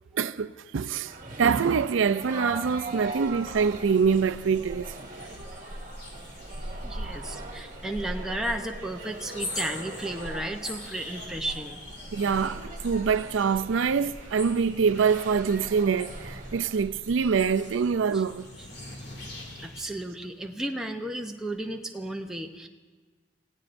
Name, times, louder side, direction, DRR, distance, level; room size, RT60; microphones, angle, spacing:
voice 1, 0.1-1.1 1.4-5.3 12.1-18.5, right 6 dB, 80° right, 0.4 m, -25 dB
sound 1, 1.0-16.8, right 2 dB, 40° right, 1.5 m, -42 dB
sound 2, 3.0-19.8, left 1 dB, 55° left, 2.6 m, -41 dB
voice 2, 6.8-11.8 18.1-18.2 19.5-22.7, right 1 dB, 5° right, 0.7 m, -34 dB
27.5 x 16.5 x 2.6 m
head